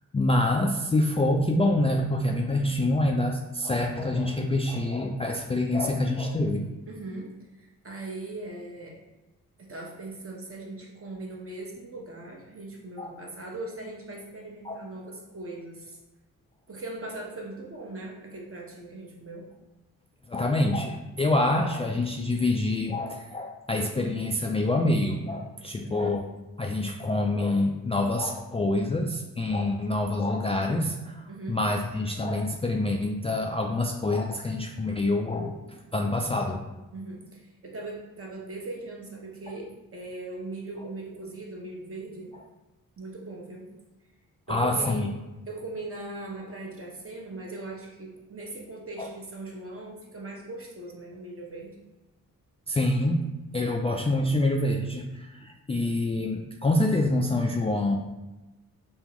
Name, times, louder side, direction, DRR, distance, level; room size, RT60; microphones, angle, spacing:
voice 1, 0.1-6.7 13.0-13.2 14.6-14.8 20.3-26.2 26.6-36.6 44.5-45.1 49.0-49.1 52.7-53.2 53.5-58.0, left 2 dB, 20° left, 1 dB, 0.3 m, -26 dB
voice 2, 6.9-9.0 9.6-16.0 16.7-19.5 25.6-26.2 31.3-31.6 36.9-42.3 43.0-43.7 44.5-45.1 45.5-51.8, right 2 dB, 40° right, -1 dB, 0.9 m, -40 dB
3.5 x 2.3 x 3.0 m, 1.1 s
supercardioid pair, 45°, 36 cm